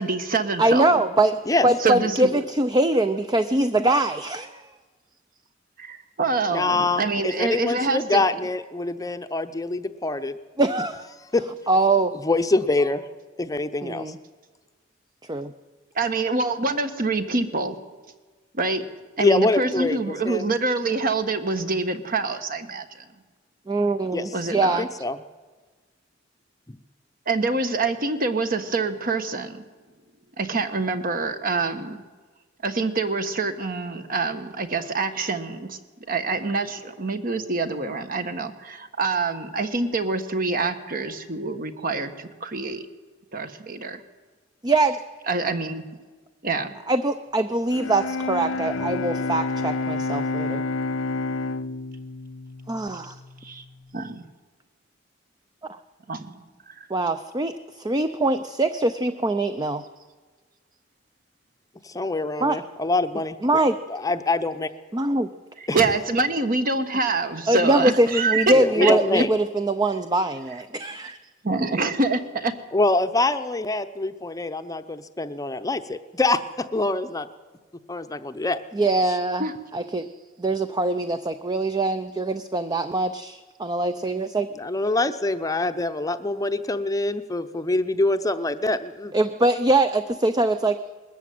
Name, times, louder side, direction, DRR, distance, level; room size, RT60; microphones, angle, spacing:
voice 1, 0.0-1.0 1.8-2.4 5.8-8.2 15.9-17.8 18.5-18.8 19.2-23.1 24.3-24.8 27.3-29.7 30.4-32.0 32.6-35.8 36.1-42.9 43.3-44.0 45.3-45.8 46.4-46.8 53.4-53.6 53.9-54.3 56.1-56.9 65.6-68.5 68.8-69.2 71.4-72.5 79.4-79.5, right 3 dB, 50° right, 9 dB, 1.4 m, -26 dB
voice 2, 0.6-1.4 1.6-4.7 10.6-11.1 11.7-12.1 13.8-14.2 15.3-15.5 23.7-24.9 44.6-45.0 46.9-50.6 52.7-53.2 55.6-55.8 56.9-59.8 62.4-62.6 63.4-63.8 64.9-65.3 67.5-71.2 78.7-79.4 79.7-80.1 80.4-84.5 89.1-90.8, right 2 dB, 20° right, 10 dB, 0.6 m, -23 dB
voice 3, 6.5-10.4 11.3-11.4 12.2-13.1 13.4-14.1 19.2-20.0 20.2-20.5 24.1-24.3 24.8-25.2 26.7-26.8 61.8-63.4 63.9-64.7 65.7-65.8 68.5-69.3 72.7-77.3 77.9-78.6 84.6-89.1, left 2 dB, 20° left, 9 dB, 0.8 m, -25 dB
Bowed string instrument, 47.7-53.7, left 3 dB, 80° left, 0.6 m, -29 dB
20.5 x 13.5 x 9.4 m, 1.4 s
head